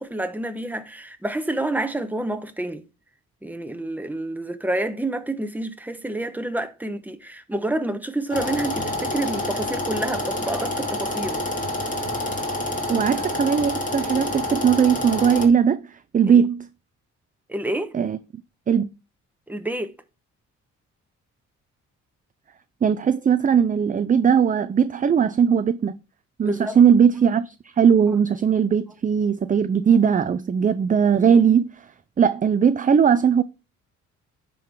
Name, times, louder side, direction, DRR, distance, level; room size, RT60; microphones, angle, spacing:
voice 1, 0.0-2.8 3.4-11.4 16.3-16.4 17.5-17.9 19.5-20.0 26.4-26.8, right 1 dB, 5° right, 1.0 m, -28 dB
Cine Projector, 8.3-15.5, left 1 dB, 25° left, 2.4 m, -28 dB
voice 2, 12.9-16.7 17.9-18.2 18.7-18.9 22.8-26.0 26.4-31.9 32.2-33.4, right 7 dB, 25° right, 0.5 m, -19 dB
10.0 x 3.9 x 4.7 m
cardioid pair, 90°, 30 cm